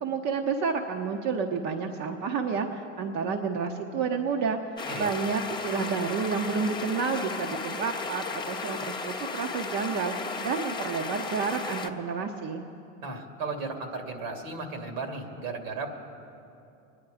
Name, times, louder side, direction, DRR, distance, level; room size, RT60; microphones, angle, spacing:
voice 1, 0.0-10.1 10.4-12.6, right 5 dB, 50° right, 3 dB, 1.1 m, -30 dB
sound 1, 4.8-11.9, left 4 dB, 10° left, 1.0 m, -35 dB
voice 2, 13.0-15.9, right 3 dB, 75° right, 4 dB, 2.5 m, -35 dB
25.0 x 10.5 x 5.0 m, 2.7 s
hypercardioid pair, 90°, 39 cm